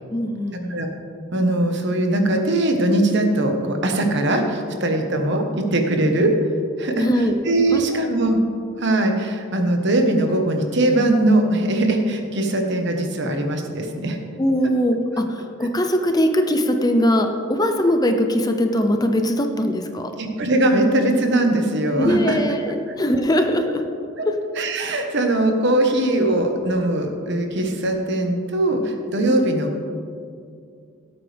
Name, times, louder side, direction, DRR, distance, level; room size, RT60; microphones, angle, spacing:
voice 1, 0.1-0.8 7.0-7.3 7.7-8.2 14.4-20.1 22.0-23.8 24.3-24.4 29.3-29.5, equal, 20° left, 5 dB, 0.6 m, -21 dB
voice 2, 1.3-6.3 6.8-8.4 8.8-14.2 20.2-22.4 24.2-24.3 24.6-29.8, right 1 dB, 55° right, 4 dB, 1.3 m, -21 dB
17.0 x 8.5 x 3.5 m, 2.4 s
head